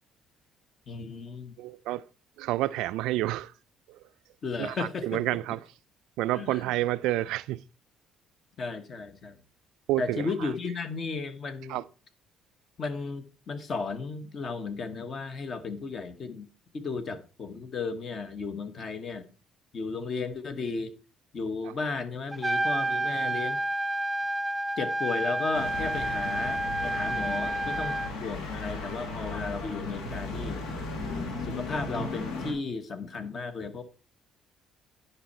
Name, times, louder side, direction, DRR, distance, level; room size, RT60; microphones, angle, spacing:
voice 1, 0.9-1.5 4.4-5.2 6.3-6.6 8.6-9.4 10.0-11.8 12.8-16.5 16.7-19.2 19.7-20.9 21.3-23.6 24.8-30.6 31.4-33.8, left 4 dB, 40° left, 1.1 m, -34 dB
voice 2, 1.6-2.0 2.4-3.5 3.9-4.0 4.6-5.6 6.2-7.6 9.9-10.5 11.7-11.8 21.6-21.7, right 16 dB, 85° right, 0.3 m, -29 dB
Trumpet, 22.3-28.1, right 1 dB, 10° right, 0.4 m, -29 dB
sound 1, 25.5-32.5, left 3 dB, 90° left, 1.9 m, -36 dB
10.0 x 5.6 x 4.3 m
cardioid pair, 130°, 0 cm